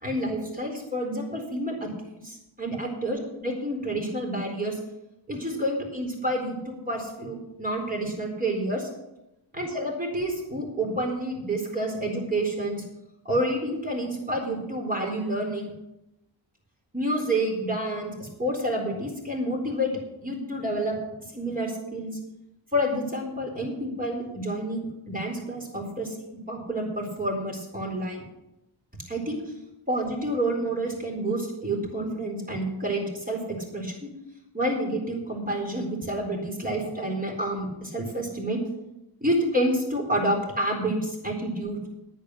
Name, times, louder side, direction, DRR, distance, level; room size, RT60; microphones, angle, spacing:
voice 1, 0.0-1.9 2.2-4.8 5.3-8.9 9.5-12.8 13.2-15.7 16.9-19.9 20.2-20.9 21.3-22.1 22.7-26.2 26.5-28.2 29.1-29.4 29.9-34.1 34.5-38.6 39.2-41.8, right 1 dB, 20° right, 0 dB, 4.2 m, -29 dB
10.5 x 10.0 x 6.4 m, 0.91 s
wide cardioid pair, 95°, 45 cm